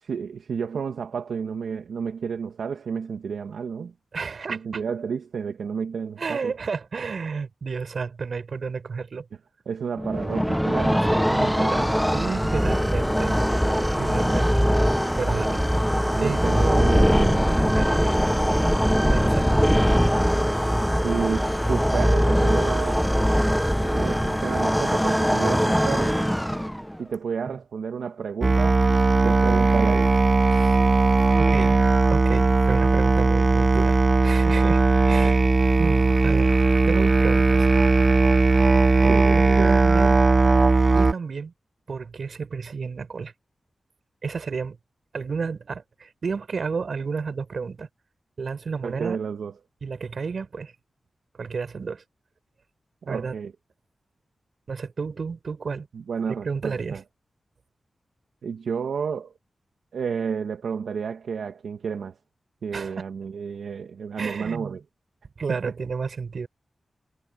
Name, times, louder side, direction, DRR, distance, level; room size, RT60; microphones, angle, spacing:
voice 1, 0.0-3.9 4.5-6.5 9.7-11.1 16.1-17.6 20.7-23.1 23.8-26.2 27.0-28.8 29.2-30.2 39.1-39.7 48.8-49.5 53.0-53.5 55.9-57.0 58.4-59.3 59.9-62.1 62.6-64.8 65.5-65.7, right 6 dB, 85° right, 1.8 m, -31 dB
voice 2, 4.1-4.8 6.2-9.3 11.1-13.4 14.0-14.6 15.2-15.6 16.2-16.4 17.6-18.7 19.1-19.5 27.5-27.6 30.5-30.8 31.4-31.8 32.1-35.4 35.8-36.6 36.9-37.7 39.0-40.2 40.9-41.5 41.9-43.3 44.2-44.8 45.1-47.9 48.4-49.2 49.8-50.7 51.3-52.0 53.1-53.3 54.7-55.9 56.4-57.0 62.7-63.0 64.2-64.8 65.4-66.5, right 5 dB, 70° right, 5.3 m, -31 dB
sound 1, 10.0-27.0, equal, ahead, 1.3 m, -21 dB
Musical instrument, 28.4-41.1, right 3 dB, 45° right, 0.6 m, -18 dB
cardioid pair, 45°, 0 cm